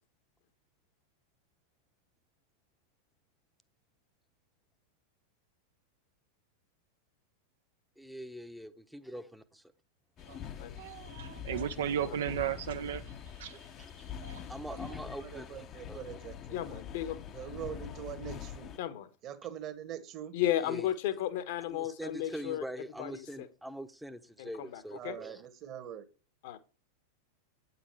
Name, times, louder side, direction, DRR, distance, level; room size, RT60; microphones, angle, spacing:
voice 1, 8.0-9.7 13.8-14.1 14.5-16.0 20.6-21.2 21.7-25.4, equal, ahead, 0.9 m, -44 dB
sound 1, 10.2-18.8, left 8 dB, 30° left, 0.8 m, -44 dB
voice 2, 10.8-13.1 13.4-13.6 14.2-14.4, right 9 dB, 60° right, 0.7 m, -35 dB
voice 3, 15.0-16.8 17.3-18.7 19.2-20.4 25.0-26.1, right 10 dB, 35° right, 1.4 m, -43 dB
voice 4, 16.5-17.2 18.8-19.1 20.3-22.6 23.0-23.5 24.4-25.2 26.4-26.6, left 12 dB, 50° left, 1.1 m, -34 dB
9.0 x 7.0 x 4.5 m
figure-of-eight pair, 90°, 0 cm